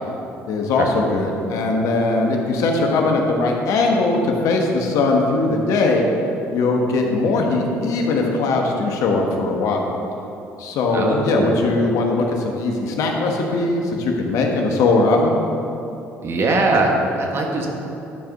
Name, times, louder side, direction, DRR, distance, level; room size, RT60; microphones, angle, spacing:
voice 1, 0.5-6.0 6.5-9.9 10.6-15.3, left 3 dB, 75° left, 1 dB, 1.1 m, -20 dB
voice 2, 10.9-11.7 16.2-17.7, right 2 dB, 50° right, 1 dB, 1.5 m, -21 dB
10.5 x 4.6 x 5.3 m, 3.0 s
supercardioid pair, 75°, 6 cm